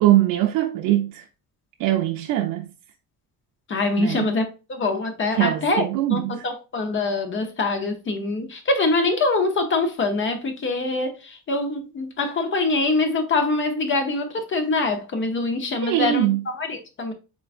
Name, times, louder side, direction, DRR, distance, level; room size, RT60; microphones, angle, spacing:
voice 1, 0.0-1.3 1.8-2.7 4.0-4.3 5.3-6.4 15.8-16.4, right 14 dB, 85° right, 0.5 m, -22 dB
voice 2, 3.7-5.8 6.1-17.1, left 3 dB, 40° left, 0.7 m, -24 dB
3.8 x 3.4 x 2.4 m
cardioid pair, 115°, 32 cm